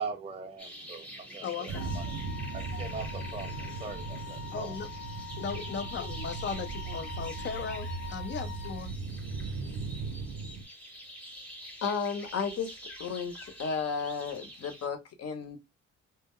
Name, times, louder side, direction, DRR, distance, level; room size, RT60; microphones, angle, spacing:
voice 1, 0.0-5.0, right 4 dB, 20° right, 0.4 m, -41 dB
sound 1, 0.6-14.9, equal, 5° left, 0.8 m, -47 dB
voice 2, 1.4-1.9 4.5-4.9 5.4-7.9 8.1-8.9, left 6 dB, 40° left, 0.4 m, -37 dB
sound 2, 1.7-8.9, left 10 dB, 90° left, 0.9 m, -45 dB
sound 3, 1.7-10.6, right 4 dB, 70° right, 0.6 m, -38 dB
voice 3, 11.8-12.7 13.0-15.6, left 5 dB, 55° left, 0.8 m, -33 dB
2.2 x 2.0 x 3.5 m
cardioid pair, 90°, 30 cm